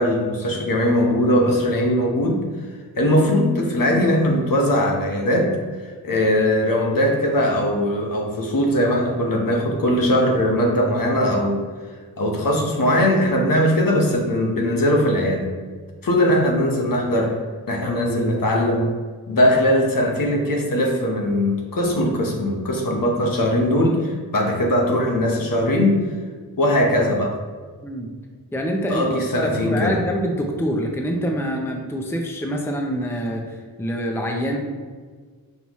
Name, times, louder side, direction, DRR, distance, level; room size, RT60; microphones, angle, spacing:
voice 1, 0.0-2.5 3.0-11.6 12.2-15.5 16.0-17.4 17.7-18.9 19.3-26.0 26.6-27.4 28.9-30.0, left 1 dB, 60° left, 0 dB, 1.1 m, -20 dB
voice 2, 28.5-29.0 29.4-34.6, equal, 5° left, 2 dB, 0.6 m, -25 dB
5.8 x 5.5 x 3.1 m, 1.5 s
wide cardioid pair, 135°, 37 cm